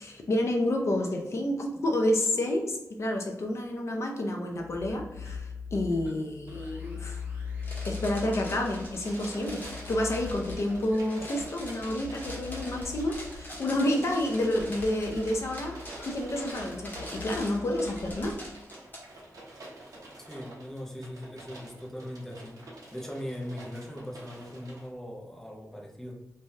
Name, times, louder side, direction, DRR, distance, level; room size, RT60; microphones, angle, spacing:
voice 1, 0.0-7.2 7.9-9.6 9.9-18.3, left 1 dB, 55° left, 1 dB, 0.5 m, -29 dB
sound 1, 4.5-18.6, left 5 dB, 40° right, 1.5 m, -42 dB
sound 2, 7.6-19.0, left 1 dB, 35° left, 0.9 m, -44 dB
sound 3, 8.5-24.9, right 1 dB, 80° right, 0.8 m, -49 dB
voice 2, 20.2-22.6 22.9-26.2, equal, 5° left, 0 dB, 0.5 m, -40 dB
3.2 x 2.2 x 2.6 m, 0.99 s
wide cardioid pair, 135°, 6 cm